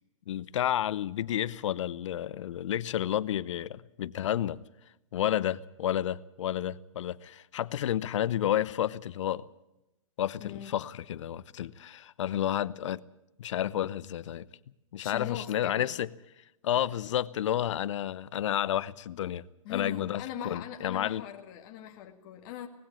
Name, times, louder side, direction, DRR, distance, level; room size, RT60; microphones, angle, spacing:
voice 1, 0.3-4.6 5.1-9.5 10.2-13.0 13.4-14.4 14.9-16.1 16.6-21.2, left 11 dB, 60° left, 0.8 m, -31 dB
voice 2, 10.4-10.7 15.0-16.0 19.6-22.7, left 9 dB, 40° left, 1.9 m, -41 dB
19.0 x 16.0 x 8.7 m
hypercardioid pair, 130°, 18 cm